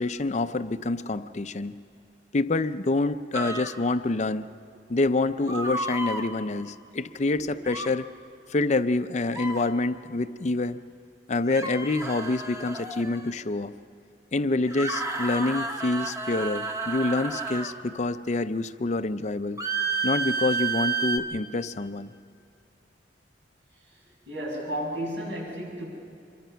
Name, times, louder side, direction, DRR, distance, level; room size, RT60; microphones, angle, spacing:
voice 1, 0.0-1.8 2.3-4.5 4.9-8.1 8.5-10.8 11.3-13.7 14.3-19.6 20.0-22.1, left 2 dB, 40° left, 12 dB, 0.5 m, -27 dB
sound 1, 3.3-3.7 5.5-6.2 7.6-7.9 9.2-9.7 11.4-13.3 14.7-17.8 19.6-21.2, right 4 dB, 15° right, 1.2 m, -31 dB
voice 2, 23.9-25.9, equal, 80° right, -3 dB, 7.4 m, -33 dB
25.5 x 23.0 x 5.7 m, 2.5 s
head